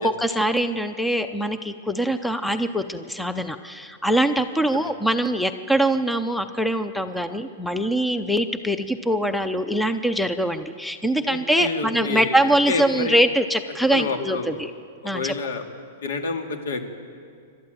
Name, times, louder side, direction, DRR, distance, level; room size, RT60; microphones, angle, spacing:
voice 1, 0.0-14.7 15.0-15.3, right 1 dB, ahead, 10 dB, 0.6 m, -23 dB
voice 2, 11.2-13.2 13.8-14.7 15.1-15.6 16.0-16.9, left 3 dB, 75° left, 5 dB, 2.6 m, -29 dB
26.5 x 12.5 x 9.1 m, 2.3 s
supercardioid pair, 160°, 0 cm